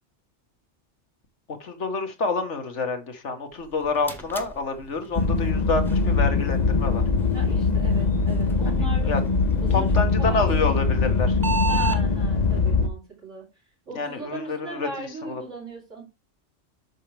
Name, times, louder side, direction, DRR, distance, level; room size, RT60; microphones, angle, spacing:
voice 1, 1.6-7.0 8.7-9.2 9.7-11.4 13.9-14.9 15.2-15.4, left 3 dB, 70° left, 1.8 m, -28 dB
sound 1, 3.5-12.0, right 2 dB, ahead, 1.3 m, -36 dB
sound 2, 5.1-12.9, left 4 dB, 40° left, 0.9 m, -22 dB
voice 2, 7.3-9.1 9.6-11.0 11.7-13.5 13.9-16.0, right 2 dB, 80° right, 4.3 m, -38 dB
8.6 x 6.4 x 3.4 m
omnidirectional pair, 1.2 m